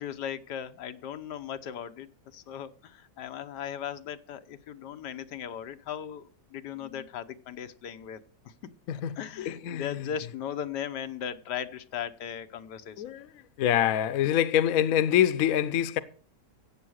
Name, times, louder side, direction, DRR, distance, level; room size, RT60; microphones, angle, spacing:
voice 1, 0.0-6.2 6.5-8.2 8.6-8.7 9.2-13.0, left 9 dB, 90° left, 1.5 m, -37 dB
voice 2, 8.9-10.1 13.0-13.3 13.6-16.0, left 10 dB, 65° left, 1.1 m, -26 dB
14.5 x 8.4 x 6.3 m
omnidirectional pair, 1.7 m